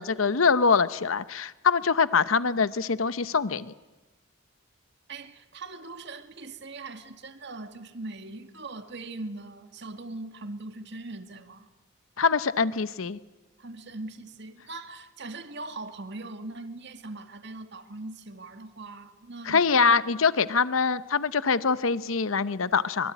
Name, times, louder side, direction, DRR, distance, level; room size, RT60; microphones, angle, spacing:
voice 1, 0.0-3.7 12.2-13.2 19.5-23.1, left 5 dB, 80° left, 0.8 m, -24 dB
voice 2, 5.1-11.7 13.6-19.7, right 2 dB, 55° right, 2.0 m, -40 dB
24.5 x 23.5 x 9.2 m
head